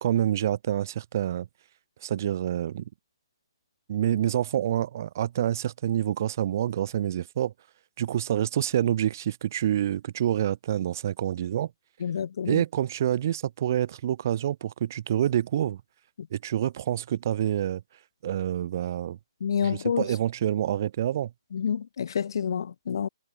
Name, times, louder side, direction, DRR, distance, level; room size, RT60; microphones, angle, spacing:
voice 1, 0.0-1.5 2.0-2.9 3.9-7.5 8.0-11.7 12.4-15.8 16.3-17.8 18.2-19.2 19.6-21.3, right 11 dB, 35° right, 1.1 m, -27 dB
voice 2, 12.0-12.6 16.2-16.3 19.4-20.1 21.5-23.1, left 7 dB, 55° left, 4.5 m, -28 dB
hypercardioid pair, 170°, 3 cm